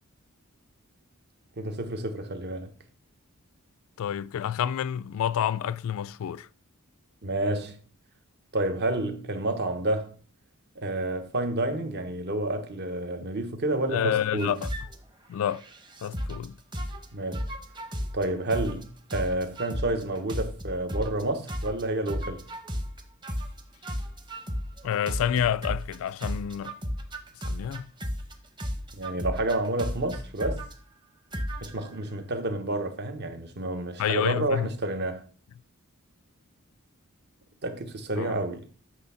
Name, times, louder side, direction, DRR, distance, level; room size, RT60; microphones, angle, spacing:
voice 1, 1.6-2.7 7.2-7.8 8.5-10.1 10.8-14.6 17.1-17.4 18.1-22.4 28.9-30.6 31.6-35.2 37.6-38.7, right 1 dB, 50° right, 1.1 m, -29 dB
voice 2, 4.0-6.5 13.9-14.7 15.3-15.6 16.0-16.6 24.8-26.7 27.4-27.9 34.0-34.7 38.2-38.4, left 9 dB, 65° left, 0.3 m, -28 dB
sound 1, 14.4-15.0 15.4-16.5 16.7-17.1 17.3-18.2 18.5-18.8 19.1-21.2 21.5-26.0 26.2-28.3 28.6-30.7 31.3-31.9, equal, 20° right, 0.9 m, -34 dB
8.2 x 3.5 x 5.6 m
head